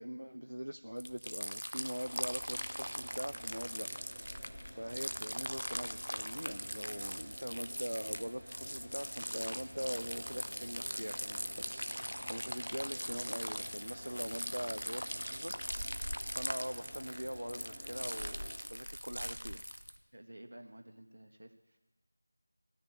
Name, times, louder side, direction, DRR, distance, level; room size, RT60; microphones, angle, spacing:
voice 1, 0.0-15.5 16.0-19.6, equal, 75° right, 8 dB, 0.5 m, -42 dB
sound 1, 1.0-20.0, equal, 85° left, 0.8 m, -41 dB
sound 2, 2.0-18.6, equal, 5° left, 2.0 m, -52 dB
sound 3, 9.2-15.3, equal, 70° left, 2.4 m, -57 dB
voice 2, 20.1-21.8, right 1 dB, 55° right, 6 dB, 1.3 m, -53 dB
17.0 x 6.6 x 9.2 m, 1.1 s
figure-of-eight pair, 170°, 0 cm